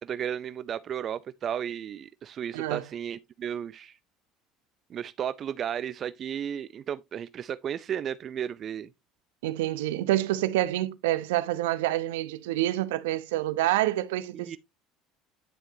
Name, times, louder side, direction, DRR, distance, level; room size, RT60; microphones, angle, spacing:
voice 1, 0.0-4.0 4.9-8.9 14.3-14.6, right 9 dB, 45° right, 0.4 m, -34 dB
voice 2, 2.5-2.8 9.4-14.6, right 15 dB, 80° right, 0.7 m, -27 dB
9.8 x 6.2 x 2.7 m
hypercardioid pair, 70°, 0 cm